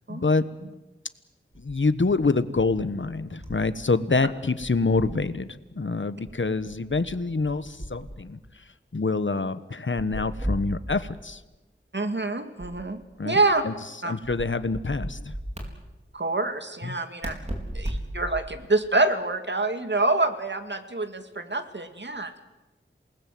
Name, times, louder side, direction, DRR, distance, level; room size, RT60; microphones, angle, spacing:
voice 1, 0.1-0.5 1.5-11.4 13.2-13.7 14.0-15.3 16.8-17.0, left 3 dB, 65° left, 13 dB, 1.2 m, -26 dB
sound 1, 1.5-3.8 4.1-5.3 6.2-8.4 9.9-11.3 12.6-13.6 14.2-15.7 17.2-18.7, equal, 35° right, 4.6 m, -37 dB
voice 2, 11.9-13.0 13.3-13.6 14.0-14.1 16.1-17.3 17.7-22.4, right 2 dB, 60° right, 8 dB, 2.2 m, -26 dB
28.0 x 20.0 x 7.8 m, 1.1 s
wide cardioid pair, 40°, 21 cm